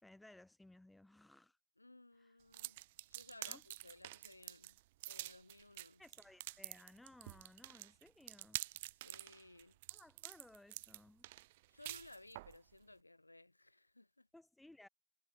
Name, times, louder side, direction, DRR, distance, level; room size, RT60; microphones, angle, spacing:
voice 1, 0.0-1.6 2.2-2.4 3.5-3.6 6.0-8.6 9.9-11.3 14.3-14.9, left 1 dB, 5° left, 3.4 m, -61 dB
voice 2, 1.8-2.8 3.1-4.8 5.1-6.0 9.0-9.8 11.7-14.3, left 2 dB, 85° left, 5.5 m, -59 dB
sound 1, 2.5-12.6, right 18 dB, 50° right, 0.4 m, -48 dB
figure-of-eight pair, 90°, 0 cm